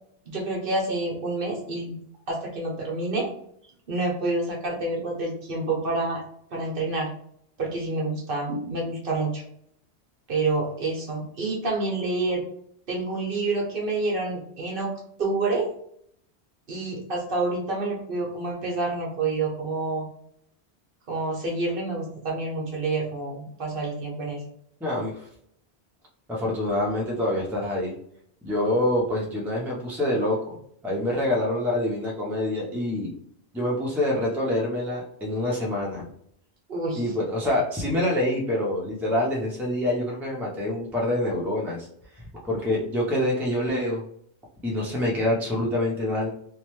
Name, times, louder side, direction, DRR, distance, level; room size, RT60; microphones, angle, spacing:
voice 1, 0.3-1.9 2.3-3.3 3.9-6.2 6.5-7.1 7.6-9.4 10.3-12.4 12.9-14.9 15.2-15.7 16.7-20.1 21.1-24.4 36.7-37.0, right 2 dB, 55° right, -2 dB, 0.9 m, -28 dB
voice 2, 24.8-25.3 26.3-27.9 28.4-30.6 30.8-33.1 33.5-36.0 36.9-41.9 42.4-44.0 44.6-46.3, left 1 dB, 5° right, -3 dB, 0.4 m, -26 dB
3.0 x 2.1 x 3.0 m, 0.69 s
omnidirectional pair, 1.1 m